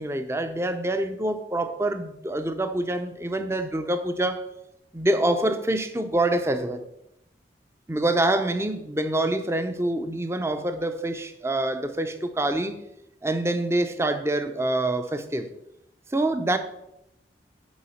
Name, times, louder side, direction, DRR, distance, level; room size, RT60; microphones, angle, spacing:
voice 1, 0.0-4.5 4.9-6.8 7.9-12.8 13.2-15.5 16.1-16.6, right 1 dB, 15° right, 0.6 m, -26 dB
7.1 x 4.9 x 6.5 m
head